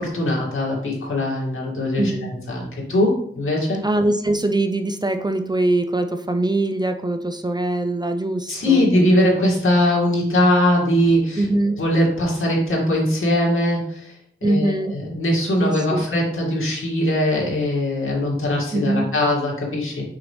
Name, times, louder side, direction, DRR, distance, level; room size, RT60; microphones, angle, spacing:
voice 1, 0.0-2.6 2.9-3.8 8.5-11.4 11.8-14.2 14.4-20.1, left 1 dB, 85° left, -4 dB, 2.3 m, -21 dB
voice 2, 2.0-2.3 3.8-8.9 11.4-11.8 14.4-15.0 15.6-16.0 18.7-19.1, right 2 dB, 20° right, 7 dB, 0.5 m, -22 dB
6.0 x 5.6 x 3.3 m, 0.66 s
wide cardioid pair, 85°, 21 cm